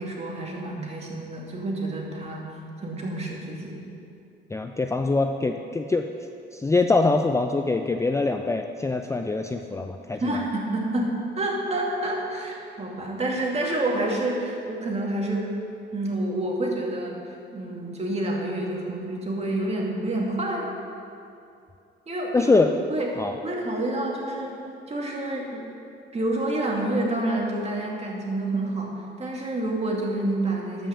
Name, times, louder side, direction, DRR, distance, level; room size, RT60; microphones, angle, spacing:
voice 1, 0.0-2.4 2.8-3.8 10.1-15.5 15.9-17.2 17.5-20.7 22.1-22.5 22.9-24.6 24.9-25.6 26.1-30.9, right 1 dB, 30° right, -2 dB, 2.4 m, -28 dB
voice 2, 4.5-6.1 6.5-10.4 22.3-22.7 23.2-23.3, left 3 dB, 15° left, 5 dB, 0.5 m, -23 dB
12.5 x 5.7 x 7.1 m, 2.6 s
cardioid pair, 90°, 20 cm